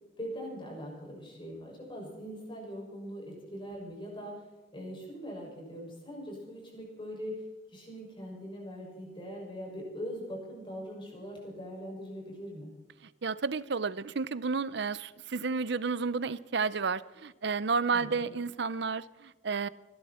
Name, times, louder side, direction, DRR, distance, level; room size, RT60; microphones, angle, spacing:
voice 1, 0.2-4.4 4.7-12.7 17.9-18.4, equal, 25° left, 6.4 m, -42 dB
voice 2, 13.2-19.7, right 4 dB, 60° right, 0.6 m, -31 dB
28.0 x 12.0 x 4.4 m
head